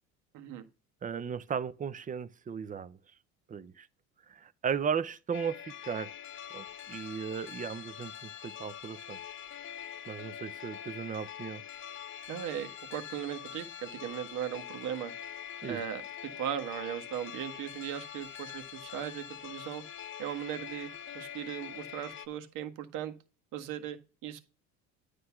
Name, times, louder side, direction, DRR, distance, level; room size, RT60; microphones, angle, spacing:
voice 1, 1.0-3.0 3.5-3.9 4.3-6.1 6.5-9.2 10.1-11.6 15.6-15.8, right 7 dB, 25° right, 0.6 m, -36 dB
sound 1, 5.3-22.3, left 9 dB, 35° left, 0.8 m, -44 dB
voice 2, 12.3-15.1 15.7-16.0 16.4-19.8 20.2-23.1 23.5-24.4, right 10 dB, 65° right, 1.5 m, -38 dB
9.5 x 3.3 x 5.8 m
supercardioid pair, 105°, 33 cm